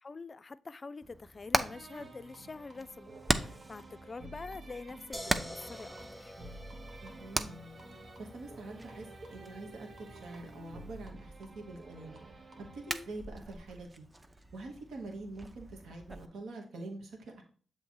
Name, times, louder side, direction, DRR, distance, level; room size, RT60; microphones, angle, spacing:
voice 1, 0.0-6.3, left 4 dB, 45° left, 0.3 m, -46 dB
Hammer, 1.0-16.3, right 2 dB, 30° right, 0.6 m, -40 dB
sound 1, 1.6-13.1, right 2 dB, 60° right, 0.9 m, -51 dB
sound 2, 5.1-10.9, equal, ahead, 1.1 m, -49 dB
voice 2, 7.0-7.6 8.2-12.2 12.6-14.0 14.5-17.4, right 2 dB, 80° right, 1.2 m, -45 dB
7.1 x 3.2 x 4.4 m
supercardioid pair, 50°, 0 cm